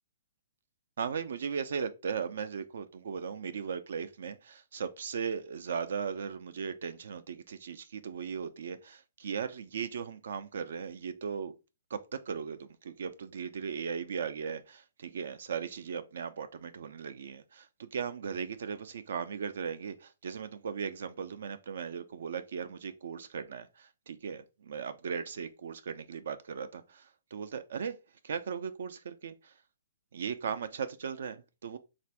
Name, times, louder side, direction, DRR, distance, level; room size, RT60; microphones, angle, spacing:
voice 1, 1.0-11.5 11.9-27.9 28.2-29.5 30.1-31.8, right 6 dB, 65° right, 0.4 m, -37 dB
3.4 x 2.5 x 4.4 m
hypercardioid pair, 170°, 0 cm